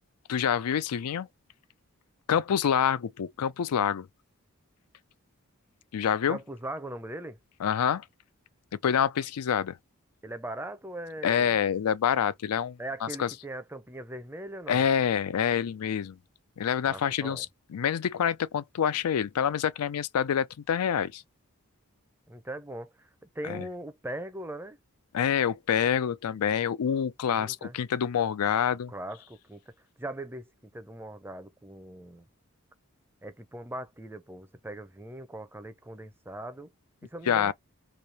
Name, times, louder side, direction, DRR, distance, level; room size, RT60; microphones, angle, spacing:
voice 1, 0.3-1.3 2.3-4.1 5.9-6.4 7.6-8.0 8.8-9.8 11.2-13.3 14.7-16.2 16.6-21.2 23.4-23.7 25.1-28.9 37.3-37.5, left 8 dB, 85° left, 0.4 m, -27 dB
voice 2, 6.3-7.4 10.2-11.6 12.8-14.8 16.8-17.4 22.3-23.1 23.3-24.8 27.3-27.8 28.9-29.6 30.0-30.4 30.7-32.2 33.2-36.7 37.0-37.5, right 1 dB, 10° right, 0.5 m, -40 dB
3.2 x 2.7 x 4.1 m
head